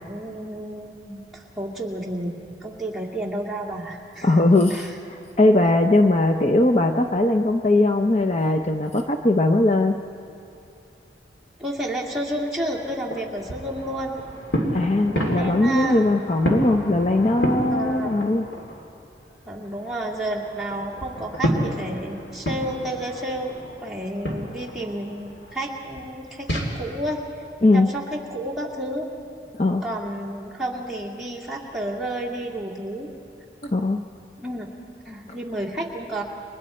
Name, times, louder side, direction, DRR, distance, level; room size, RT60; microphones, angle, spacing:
voice 1, 0.0-2.3 2.6-4.3 4.7-4.9 11.6-14.2 15.3-16.0 17.7-18.1 19.5-27.2 27.7-29.1 29.7-33.1 34.4-34.7 35.1-36.2, right 1 dB, ahead, -5 dB, 2.2 m, -31 dB
voice 2, 4.2-4.9 5.4-10.0 14.7-18.5 27.6-27.9 29.6-29.8 33.6-34.0, left 2 dB, 35° left, 5 dB, 0.6 m, -19 dB
sound 1, 12.0-18.9 19.2-26.7, equal, 85° left, 3.1 m, -31 dB
29.5 x 23.0 x 4.3 m, 2.7 s
head